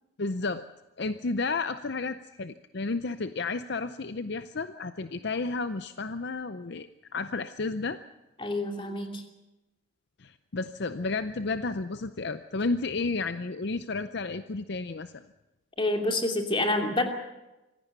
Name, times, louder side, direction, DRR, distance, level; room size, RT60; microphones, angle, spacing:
voice 1, 0.2-0.6 1.0-6.9 7.1-8.0 10.2-15.2, left 3 dB, 55° left, 11 dB, 0.6 m, -32 dB
voice 2, 8.4-9.2 15.8-17.1, left 2 dB, 25° left, 3 dB, 2.8 m, -27 dB
25.0 x 17.0 x 6.8 m, 1.0 s
head